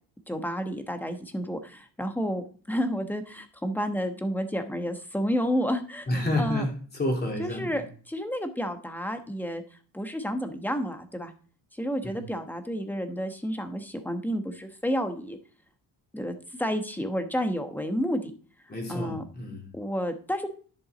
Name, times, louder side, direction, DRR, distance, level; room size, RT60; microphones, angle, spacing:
voice 1, 0.3-6.6 7.4-9.6 9.9-11.3 11.7-15.4 16.1-18.3 18.9-19.2 19.7-20.5, equal, 5° left, 1.1 m, -30 dB
voice 2, 6.1-7.8 12.0-12.3 18.7-19.7, left 1 dB, 25° left, 3.1 m, -30 dB
10.5 x 6.1 x 4.0 m
cardioid pair, 130°, 40 cm